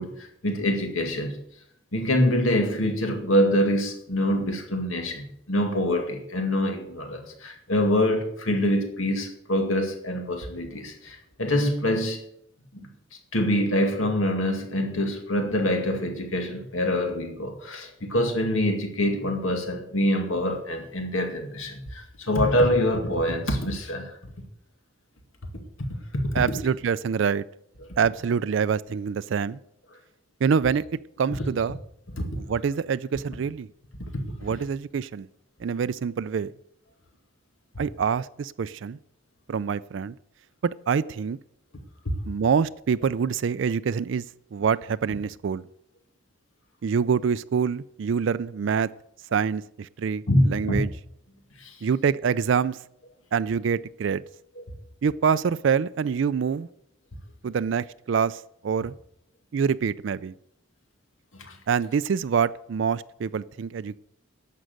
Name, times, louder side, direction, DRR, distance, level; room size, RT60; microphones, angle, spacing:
voice 1, 0.0-1.4 1.9-12.2 12.7-12.9 13.3-24.2 25.8-26.4 32.2-32.3 34.1-34.3 50.3-50.8 51.6-51.8 54.6-54.7 61.4-61.6, left 1 dB, 85° left, 4 dB, 2.2 m, -25 dB
voice 2, 26.3-27.4 28.0-29.6 30.4-30.8 31.2-31.8 32.3-33.7 34.4-35.3 35.6-36.5 37.8-39.0 39.5-40.1 40.6-41.4 42.3-44.2 44.5-45.6 46.8-48.9 49.3-50.9 51.8-52.8 53.3-54.2 55.0-56.7 57.4-58.9 59.5-60.3 61.7-64.0, right 6 dB, 65° right, 16 dB, 0.4 m, -25 dB
11.5 x 7.6 x 7.9 m, 0.73 s
head